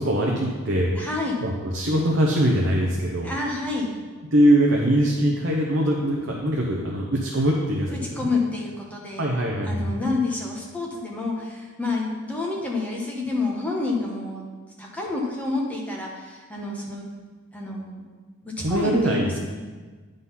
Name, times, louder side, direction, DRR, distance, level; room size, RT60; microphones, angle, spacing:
voice 1, 0.0-1.0 1.4-3.3 4.3-8.3 9.2-10.1 18.6-19.4, right 1 dB, 55° right, -1 dB, 0.8 m, -22 dB
voice 2, 1.0-1.4 3.2-3.9 8.2-9.3 9.7-14.4 14.8-17.0 17.5-18.1 18.7-19.4, left 3 dB, 5° left, -3 dB, 1.1 m, -28 dB
9.5 x 3.9 x 5.7 m, 1.4 s
head